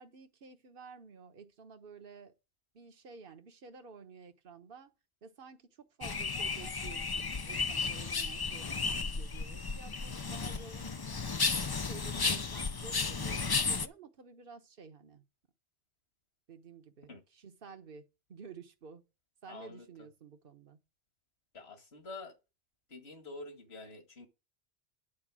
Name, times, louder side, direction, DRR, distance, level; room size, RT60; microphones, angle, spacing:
voice 1, 0.0-2.3 2.7-4.9 5.2-11.0 11.8-15.2 16.5-19.0 19.4-20.8, right 5 dB, 55° right, 1.3 m, -52 dB
sound 1, 6.0-13.9, left 4 dB, 30° left, 0.4 m, -34 dB
voice 2, 19.5-19.8 21.5-22.3 22.9-24.3, left 3 dB, 65° left, 2.2 m, -47 dB
10.5 x 4.4 x 7.5 m
omnidirectional pair, 1.1 m